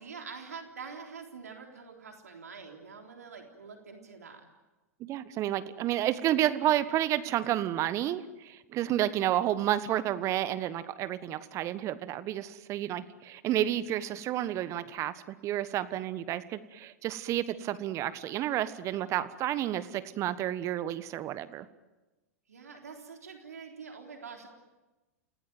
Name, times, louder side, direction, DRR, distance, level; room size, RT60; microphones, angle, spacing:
voice 1, 0.0-4.4 22.5-24.5, right 5 dB, 80° right, 3 dB, 3.8 m, -45 dB
voice 2, 5.0-21.6, right 12 dB, 35° right, 14 dB, 1.3 m, -30 dB
29.0 x 18.0 x 9.4 m, 1.1 s
hypercardioid pair, 100°, 8 cm